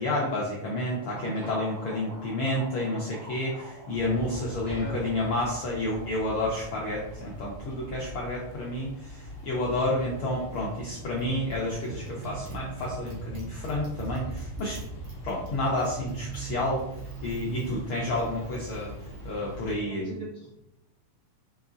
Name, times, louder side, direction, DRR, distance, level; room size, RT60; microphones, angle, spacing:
voice 1, 0.0-14.8 15.2-16.8 17.2-18.9 19.2-20.1, left 1 dB, 90° left, -4 dB, 1.1 m, -30 dB
Motorcycle, 0.9-19.9, right 4 dB, 60° right, 2.1 m, -45 dB
voice 2, 1.1-1.6 4.5-5.0 10.4-10.5 19.8-20.5, equal, 35° right, -10 dB, 1.3 m, -41 dB
sound 1, 3.9-19.8, right 1 dB, 65° left, 1.3 m, -42 dB
5.3 x 3.8 x 2.4 m, 0.84 s
omnidirectional pair, 3.4 m